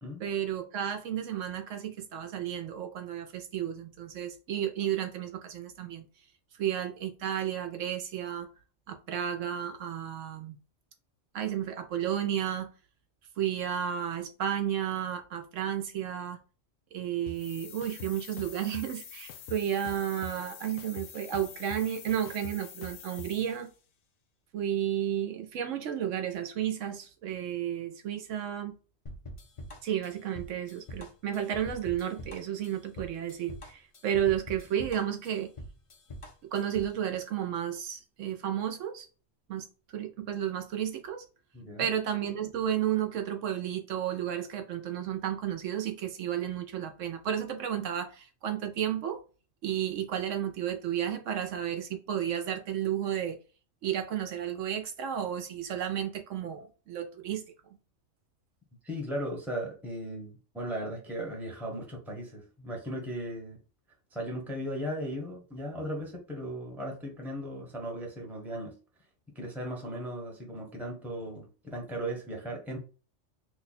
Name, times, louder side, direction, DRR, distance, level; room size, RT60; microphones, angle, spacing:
voice 1, 0.2-6.0 6.5-8.5 8.9-10.6 11.3-12.7 13.4-16.4 16.9-23.7 24.5-28.8 29.8-35.5 36.5-39.1 39.5-41.2 41.8-49.2 49.6-53.4 53.8-57.4, right 10 dB, 75° right, 0.9 m, -32 dB
sound 1, 17.3-17.4 17.8-18.8 19.3-20.4 20.8-23.3, left 3 dB, 90° left, 1.0 m, -44 dB
sound 2, 17.3-23.8, left 9 dB, 65° left, 0.8 m, -47 dB
sound 3, 29.1-37.0, equal, 45° left, 0.4 m, -45 dB
voice 2, 41.5-41.9 58.8-63.6 64.1-68.7 69.3-72.8, equal, ahead, 0.8 m, -37 dB
3.1 x 2.2 x 4.0 m
omnidirectional pair, 1.3 m